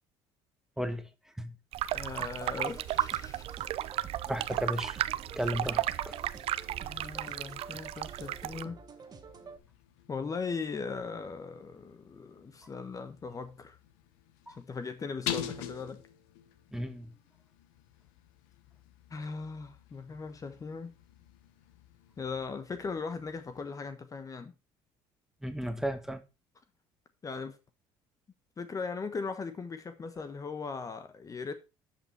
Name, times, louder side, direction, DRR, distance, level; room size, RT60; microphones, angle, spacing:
voice 1, 0.8-1.1 1.4-1.5 4.3-5.0 5.3-6.2 14.5-14.6 16.7-17.1 25.4-26.2, equal, 5° right, 1.5 m, -34 dB
sound 1, 1.7-8.6, right 13 dB, 60° right, 0.6 m, -34 dB
voice 2, 1.9-3.5 6.8-8.8 10.1-13.8 14.6-16.0 19.1-20.9 22.2-24.5 27.2-27.6 28.6-31.5, left 4 dB, 30° left, 1.2 m, -39 dB
sound 2, 2.2-9.6, right 5 dB, 35° right, 1.6 m, -50 dB
sound 3, 5.1-23.7, left 11 dB, 85° left, 1.1 m, -47 dB
12.0 x 5.8 x 4.5 m
supercardioid pair, 85°, 11 cm